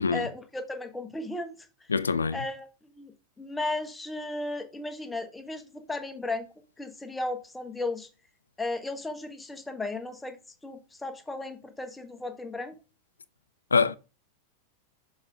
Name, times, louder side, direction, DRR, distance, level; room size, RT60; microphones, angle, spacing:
voice 1, 0.1-1.7 2.3-6.5 6.8-8.1 8.6-12.7, left 2 dB, 10° left, 1.3 m, -35 dB
voice 2, 1.9-2.4 13.7-14.0, left 5 dB, 75° left, 0.5 m, -24 dB
6.9 x 5.4 x 3.6 m
figure-of-eight pair, 90°, 0 cm